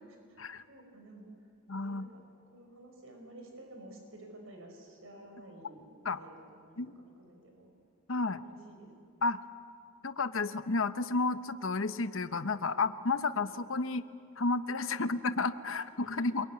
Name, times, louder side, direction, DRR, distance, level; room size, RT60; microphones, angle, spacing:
voice 1, 0.3-1.3 1.8-2.2 2.5-7.7 8.4-8.9 15.0-15.1 15.7-15.8 16.2-16.3, right 1 dB, 75° right, 3 dB, 5.0 m, -52 dB
voice 2, 1.7-2.1 6.0-6.2 6.8-6.9 8.1-8.4 9.2-9.4 10.0-14.0 14.4-16.4, left 3 dB, 70° left, 11 dB, 1.0 m, -31 dB
26.5 x 22.5 x 9.8 m, 2.2 s
head